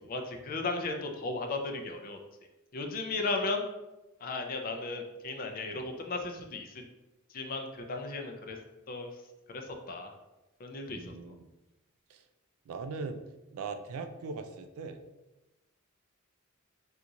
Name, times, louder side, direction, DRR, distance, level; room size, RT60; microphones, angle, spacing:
voice 1, 0.1-2.2 2.7-3.6 4.2-6.8 7.3-8.6 8.9-9.2 9.5-10.1 10.6-11.1, left 3 dB, 40° left, 4 dB, 0.4 m, -35 dB
voice 2, 10.9-11.5 12.1-12.2 12.7-13.3 13.5-15.0, right 4 dB, 80° right, 8 dB, 0.3 m, -40 dB
2.8 x 2.4 x 3.8 m, 1.0 s
head